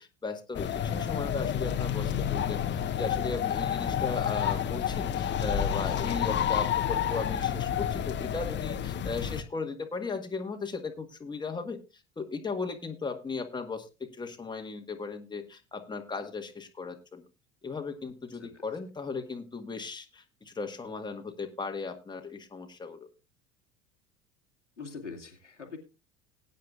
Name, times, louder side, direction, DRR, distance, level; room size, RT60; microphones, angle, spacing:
voice 1, 0.0-11.8 12.2-13.9 14.1-17.2 17.6-23.0, left 4 dB, 10° left, 5 dB, 1.5 m, -37 dB
sound 1, 0.5-9.4, left 9 dB, 30° left, 1.1 m, -30 dB
voice 2, 24.8-25.8, left 5 dB, 90° left, 2 dB, 2.1 m, -43 dB
19.5 x 9.3 x 2.4 m, 0.28 s
figure-of-eight pair, 70°, 35 cm